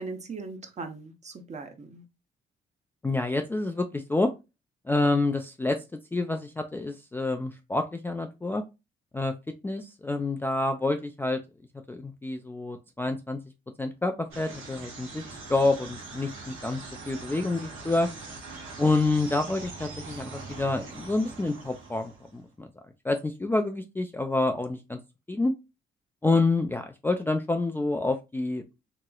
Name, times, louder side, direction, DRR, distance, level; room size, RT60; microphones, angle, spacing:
voice 1, 0.0-2.0, right 3 dB, 35° right, 6 dB, 0.7 m, -39 dB
voice 2, 3.0-4.3 4.9-5.8 6.1-8.6 9.1-9.3 9.6-11.4 11.9-13.4 13.8-15.2 15.5-18.1 18.8-22.7 23.0-25.0 25.3-25.5 26.2-28.6, left 2 dB, 10° left, 4 dB, 0.3 m, -28 dB
sound 1, 14.3-22.4, right 3 dB, 90° right, 1.2 m, -42 dB
3.0 x 2.8 x 2.2 m, 0.25 s
cardioid pair, 90°, 20 cm